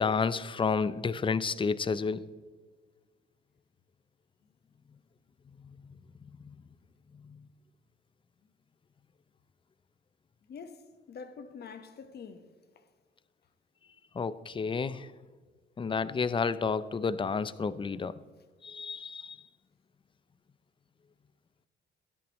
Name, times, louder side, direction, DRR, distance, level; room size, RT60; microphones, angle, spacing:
voice 1, 0.0-2.3 6.4-6.6 7.1-7.4 14.1-15.1 15.8-18.1 18.6-19.4, left 5 dB, 25° left, 0.5 m, -31 dB
voice 2, 10.4-12.9, left 5 dB, 55° left, 1.2 m, -46 dB
13.0 x 10.5 x 3.1 m
cardioid pair, 90°, 20 cm